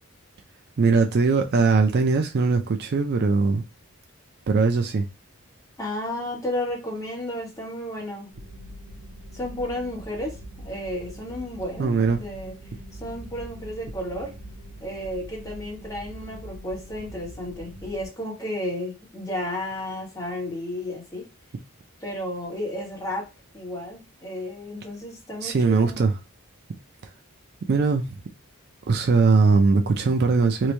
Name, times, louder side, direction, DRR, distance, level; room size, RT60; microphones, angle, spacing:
voice 1, 0.8-3.6 4.5-5.1 11.8-12.2 25.4-26.1 27.7-28.1 28.9-30.7, right 4 dB, 45° right, 0.4 m, -20 dB
voice 2, 5.8-8.3 9.3-12.5 12.9-14.3 14.8-21.3 22.0-23.3 23.5-26.0, left 1 dB, 15° left, 1.4 m, -32 dB
sound 1, 8.3-18.1, equal, 80° right, 0.7 m, -42 dB
3.1 x 2.6 x 3.2 m
head